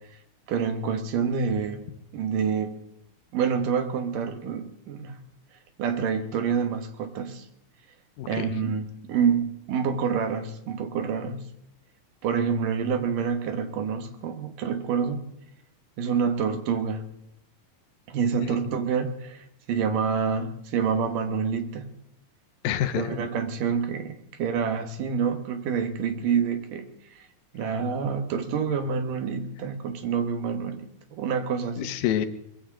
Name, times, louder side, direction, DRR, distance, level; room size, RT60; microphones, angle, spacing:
voice 1, 0.5-1.9 2.1-2.7 3.3-5.2 5.8-7.5 8.3-11.4 12.2-15.2 16.0-17.1 18.1-21.9 23.0-26.9 27.2-27.3 27.5-31.9, right 6 dB, 70° right, 8 dB, 2.9 m, -27 dB
voice 2, 22.6-23.2 31.8-32.3, left 10 dB, 80° left, 9 dB, 2.6 m, -27 dB
22.0 x 15.5 x 3.7 m, 0.79 s
omnidirectional pair, 4.1 m